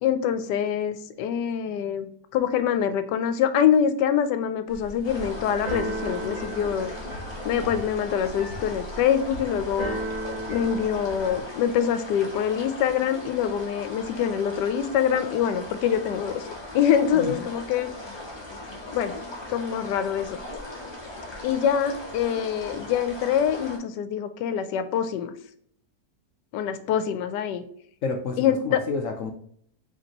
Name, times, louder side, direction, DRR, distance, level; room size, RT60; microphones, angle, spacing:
voice 1, 0.0-6.9 7.4-10.0 10.5-16.5 16.7-17.9 18.9-19.1 19.5-20.4 21.4-25.3 26.5-27.6 28.4-28.8, left 8 dB, 85° left, 11 dB, 1.2 m, -25 dB
Keyboard (musical), 4.7-11.4, right 1 dB, 55° right, 1.6 m, -35 dB
sound 1, 5.0-23.8, left 2 dB, 20° left, 0.9 m, -39 dB
voice 2, 17.1-17.4 28.0-29.3, left 4 dB, 65° left, 4 dB, 0.8 m, -30 dB
5.1 x 3.3 x 2.9 m, 0.64 s
omnidirectional pair, 1.8 m